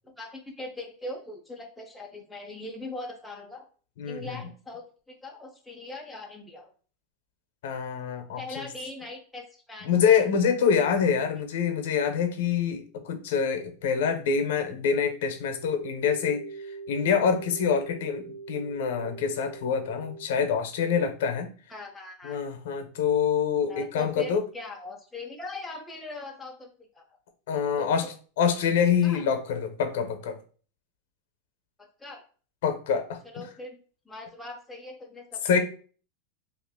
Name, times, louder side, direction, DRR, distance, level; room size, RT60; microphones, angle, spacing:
voice 1, 0.0-3.7 4.0-4.9 5.2-6.7 8.4-10.2 21.7-22.4 23.7-26.7 26.9-27.0 27.8-28.1 29.0-29.2 31.8-32.2 33.3-33.8 34.1-35.6, left 2 dB, 5° left, 0 dB, 0.5 m, -40 dB
voice 2, 7.6-8.6 9.8-16.4 16.9-21.5 22.2-24.4 27.5-28.1 28.4-30.4 32.6-33.4 35.4-35.6, left 7 dB, 65° left, 7 dB, 0.6 m, -26 dB
sound 1, 15.3-20.2, right 4 dB, 60° right, 0.4 m, -42 dB
2.8 x 2.4 x 3.5 m, 0.40 s
supercardioid pair, 175°, 0 cm